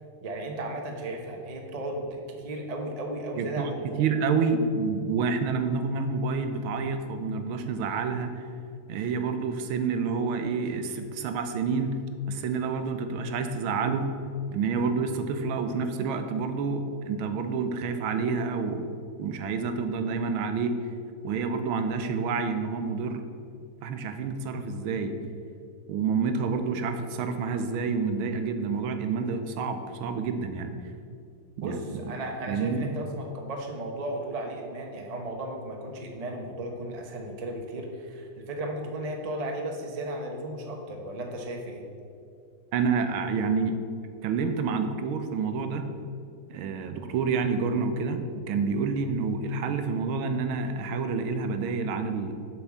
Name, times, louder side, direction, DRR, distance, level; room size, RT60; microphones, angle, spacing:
voice 1, 0.2-4.0 31.6-41.8, right 1 dB, 55° right, 2 dB, 0.4 m, -35 dB
voice 2, 3.4-3.7 4.0-8.4 8.9-11.9 12.3-14.1 14.5-18.9 19.2-20.7 21.2-23.2 23.8-25.1 25.9-30.7 31.6-31.8 32.5-32.9 42.7-43.8 44.2-45.8 46.5-52.3, right 5 dB, 85° right, 7 dB, 1.5 m, -28 dB
7.5 x 4.5 x 7.1 m, 2.4 s
omnidirectional pair, 2.3 m